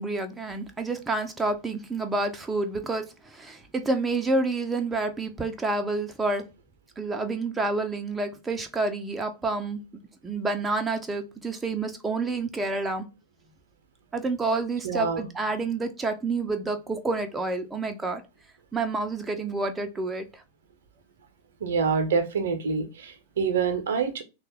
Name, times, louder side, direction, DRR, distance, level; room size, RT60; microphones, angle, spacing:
voice 1, 0.0-6.4 7.0-9.8 10.2-13.0 14.1-18.2 18.7-20.4, right 3 dB, 15° right, 0.4 m, -29 dB
voice 2, 14.8-15.3 21.6-24.2, right 5 dB, 60° right, 0.6 m, -26 dB
3.2 x 2.3 x 3.0 m
figure-of-eight pair, 90°, 0 cm